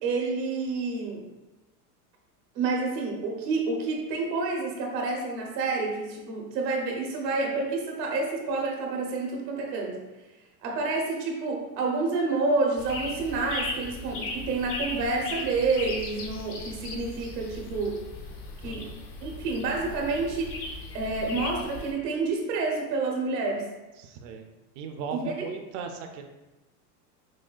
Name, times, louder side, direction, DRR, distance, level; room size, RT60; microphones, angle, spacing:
voice 1, 0.0-1.2 2.5-10.0 10.6-18.0 18.6-18.9 19.2-20.6 20.9-23.7 25.1-25.5, right 3 dB, 90° right, 0 dB, 1.1 m, -29 dB
sound 1, 12.8-21.9, left 3 dB, 30° left, 0.4 m, -37 dB
voice 2, 18.6-19.0 24.0-24.4 24.8-26.2, right 5 dB, 50° right, 5 dB, 0.4 m, -37 dB
6.1 x 2.3 x 2.4 m, 1.1 s
supercardioid pair, 120°, 48 cm